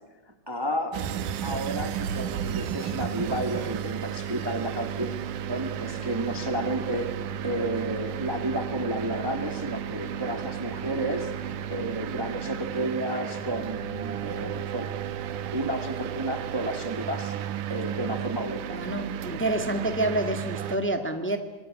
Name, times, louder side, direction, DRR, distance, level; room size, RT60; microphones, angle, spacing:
voice 1, 0.5-1.0 1.4-5.1 5.5-7.1 7.4-11.3 11.7-14.9 15.5-17.3 17.7-18.8, right 1 dB, 20° right, 5 dB, 0.6 m, -31 dB
sound 1, 0.9-20.8, right 9 dB, 80° right, 2.6 m, -33 dB
voice 2, 18.7-21.4, right 1 dB, 5° left, 5 dB, 0.9 m, -28 dB
27.0 x 21.0 x 8.5 m, 1.3 s
omnidirectional pair, 3.6 m